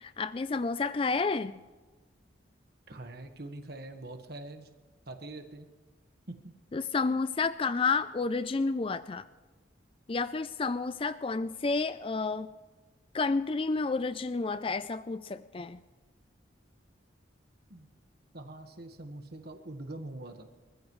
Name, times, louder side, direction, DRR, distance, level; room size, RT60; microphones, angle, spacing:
voice 1, 0.0-1.6 6.7-9.2 10.1-12.5 13.1-15.8, left 4 dB, 30° left, 12 dB, 0.4 m, -30 dB
voice 2, 2.9-4.7 5.1-5.7 6.3-6.4 17.7-17.9 18.3-20.4, right 2 dB, 55° right, 6 dB, 1.4 m, -43 dB
28.0 x 15.0 x 3.2 m, 1.3 s
head